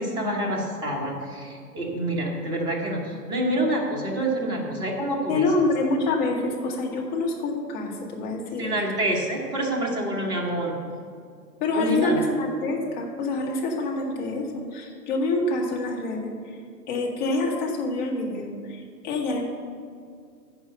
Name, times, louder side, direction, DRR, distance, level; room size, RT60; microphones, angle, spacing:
voice 1, 0.0-5.5 8.6-10.8 11.7-12.2, right 1 dB, 10° right, -3 dB, 1.4 m, -27 dB
voice 2, 5.3-8.8 11.6-16.6 16.9-19.4, left 2 dB, 25° left, -1 dB, 1.9 m, -26 dB
15.0 x 5.5 x 6.7 m, 2.2 s
figure-of-eight pair, 130°, 50 cm